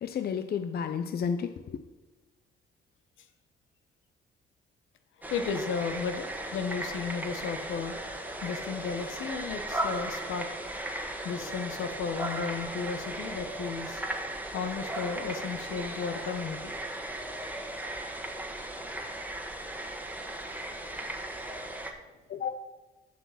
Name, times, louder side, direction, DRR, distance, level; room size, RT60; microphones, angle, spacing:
voice 1, 0.0-1.8 22.3-22.6, left 7 dB, 50° left, 8 dB, 0.6 m, -32 dB
sound 1, 5.2-21.9, right 1 dB, 10° right, 1.4 m, -37 dB
voice 2, 5.3-7.9 8.4-10.5 11.2-14.0 14.5-16.7, left 5 dB, 80° left, 7 dB, 1.2 m, -34 dB
7.8 x 6.2 x 7.3 m, 1.2 s
cardioid pair, 90°, 20 cm